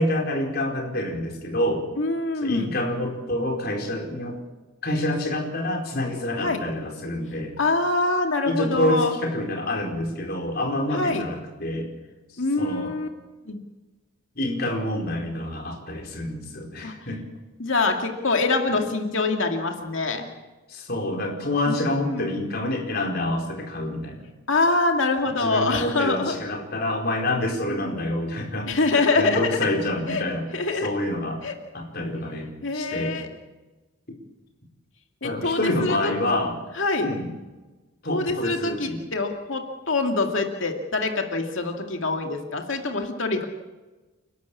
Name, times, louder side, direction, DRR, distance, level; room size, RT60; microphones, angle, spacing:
voice 1, 0.0-1.8 2.4-4.4 4.8-7.5 8.4-11.9 12.3-12.9 14.4-17.2 18.7-18.8 20.7-24.2 25.4-30.5 30.8-31.5 31.7-33.2 35.2-36.6 37.0-37.3 38.0-39.0, left 1 dB, 45° left, 2 dB, 4.6 m, -27 dB
voice 2, 2.0-2.7 6.4-6.6 7.6-9.1 10.9-11.3 12.4-13.1 13.5-13.6 16.8-16.9 17.6-20.2 21.7-22.3 24.5-26.3 27.7-28.0 28.7-29.6 30.1-30.2 30.5-30.9 31.4-31.5 32.6-33.3 35.2-36.1 36.8-37.1 38.1-43.5, left 3 dB, 65° left, 3 dB, 2.2 m, -25 dB
30.0 x 12.5 x 8.5 m, 1.2 s
head